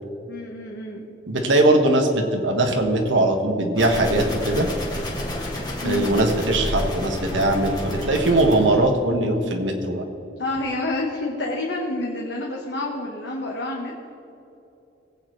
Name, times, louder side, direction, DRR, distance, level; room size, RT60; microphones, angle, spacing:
voice 1, 0.3-1.0 5.8-6.1 10.4-14.1, left 2 dB, 70° left, -3 dB, 1.4 m, -28 dB
voice 2, 1.3-4.7 5.8-10.0, right 1 dB, 80° right, 3 dB, 1.6 m, -20 dB
sound 1, 3.8-8.8, left 1 dB, 20° left, 1.6 m, -30 dB
19.5 x 8.6 x 3.3 m, 2.9 s
head